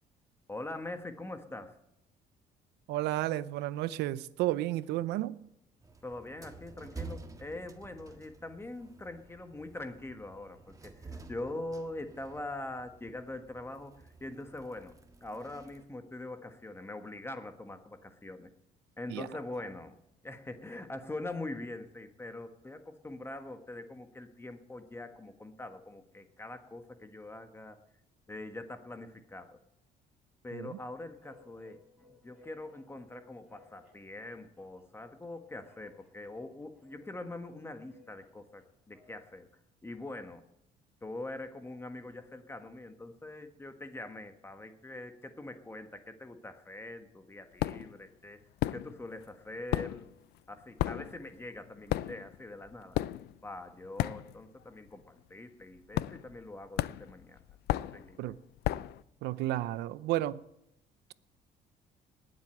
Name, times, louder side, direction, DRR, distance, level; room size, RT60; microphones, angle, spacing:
voice 1, 0.5-1.8 6.0-14.9 15.2-18.5 19.0-20.0 20.2-27.8 28.3-29.6 30.4-31.8 32.1-39.5 39.8-40.4 41.0-50.1 50.5-53.0 53.4-57.4 57.7-58.3, left 2 dB, 15° left, 1.3 m, -43 dB
voice 2, 2.9-5.4 19.1-19.3 30.5-30.8 58.2-58.4 59.2-60.4, right 15 dB, 85° right, 0.6 m, -32 dB
sound 1, 5.8-15.8, right 3 dB, 20° right, 1.6 m, -50 dB
sound 2, 31.2-39.4, left 3 dB, ahead, 6.8 m, -63 dB
sound 3, 47.6-48.0 48.6-49.2 49.5-54.6 54.9-55.2 55.9-56.5 56.8-59.0, left 15 dB, 75° left, 0.5 m, -34 dB
19.0 x 7.8 x 8.8 m
cardioid pair, 110°, 17 cm